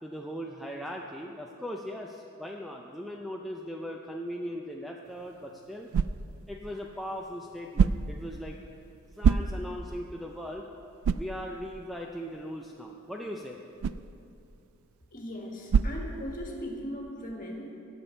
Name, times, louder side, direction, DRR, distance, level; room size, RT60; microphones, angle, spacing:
voice 1, 0.0-5.9 6.5-8.6 9.2-10.7 11.1-13.6, equal, ahead, 0 dB, 0.4 m, -39 dB
sound 1, 5.0-16.8, right 6 dB, 70° right, 0.3 m, -32 dB
voice 2, 15.1-17.7, equal, 40° left, 0 dB, 1.6 m, -38 dB
17.5 x 7.1 x 4.4 m, 2.6 s
head